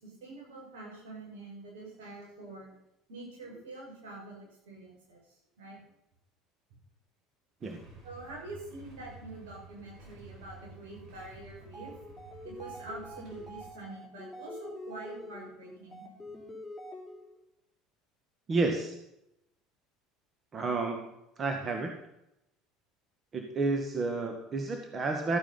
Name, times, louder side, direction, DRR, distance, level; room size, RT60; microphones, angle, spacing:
voice 1, 0.0-2.7 3.1-5.2 5.6-5.8 8.0-11.9 12.1-16.0, right 2 dB, 80° right, -3 dB, 6.6 m, -46 dB
Motorcycle / Engine starting / Idling, 7.6-13.7, right 3 dB, 55° right, 4.5 m, -52 dB
sound 1, 11.6-17.4, left 1 dB, ahead, 4.2 m, -46 dB
voice 2, 18.5-19.0 20.5-21.1 21.4-21.9 23.3-25.4, right 3 dB, 35° right, 4 dB, 1.9 m, -30 dB
14.0 x 9.0 x 5.7 m, 0.84 s
hypercardioid pair, 75°, 0 cm